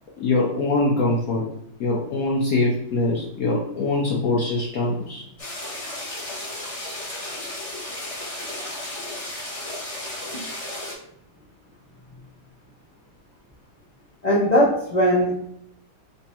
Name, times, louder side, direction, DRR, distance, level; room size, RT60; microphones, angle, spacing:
voice 1, 0.2-1.4 1.8-5.2, left 2 dB, 65° left, -3 dB, 1.0 m, -23 dB
sound 1, 5.4-10.9, left 1 dB, 30° left, 0.6 m, -33 dB
voice 2, 14.2-15.3, equal, 85° left, -6 dB, 0.3 m, -19 dB
3.4 x 2.1 x 4.2 m, 0.71 s
omnidirectional pair, 2.0 m